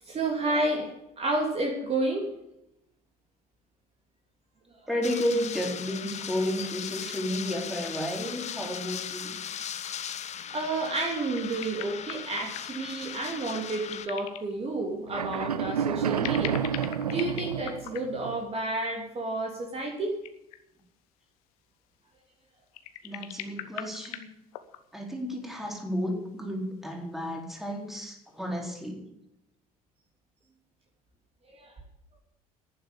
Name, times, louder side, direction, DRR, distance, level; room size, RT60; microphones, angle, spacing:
voice 1, 0.0-2.2 10.5-16.6 17.0-20.2 31.5-31.7, right 2 dB, 30° right, 0 dB, 3.1 m, -30 dB
voice 2, 4.9-9.4 23.0-24.3 24.9-29.1, equal, ahead, 0 dB, 4.3 m, -32 dB
sound 1, 5.0-14.1, left 8 dB, 35° left, 0.9 m, -38 dB
sound 2, 11.3-12.9 13.8-14.6 15.3-15.5 16.1-18.6 19.8-19.9 20.1-20.8 22.7-25.1 26.0-26.1 27.2-27.4, left 12 dB, 70° left, 1.1 m, -41 dB
Steel On Rollers, 15.1-18.4, right 8 dB, 85° right, 0.5 m, -30 dB
11.0 x 9.6 x 8.5 m, 0.83 s
figure-of-eight pair, 60°, 19 cm